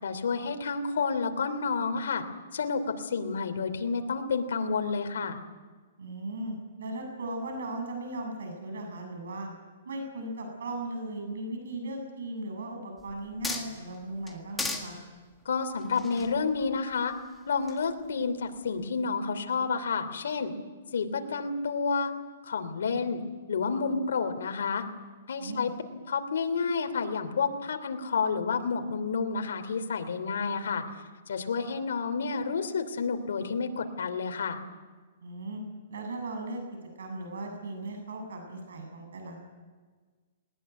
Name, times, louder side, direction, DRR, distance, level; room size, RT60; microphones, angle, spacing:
voice 1, 0.0-2.2 2.5-5.4 15.4-17.1 17.5-20.5 20.9-22.1 22.4-23.2 23.5-24.8 25.3-25.7 26.1-30.8 31.3-34.6, left 5 dB, 85° left, 7 dB, 3.0 m, -30 dB
voice 2, 6.0-9.5 9.8-15.0 25.4-25.7 35.2-35.6 35.9-36.6 37.0-39.4, right 2 dB, 85° right, 3 dB, 7.7 m, -37 dB
sound 1, 13.0-14.0 14.3-14.9 15.8-17.2 17.7-17.9, left 3 dB, 5° left, 1.7 m, -36 dB
20.5 x 20.0 x 9.4 m, 1.4 s
hypercardioid pair, 170°, 0 cm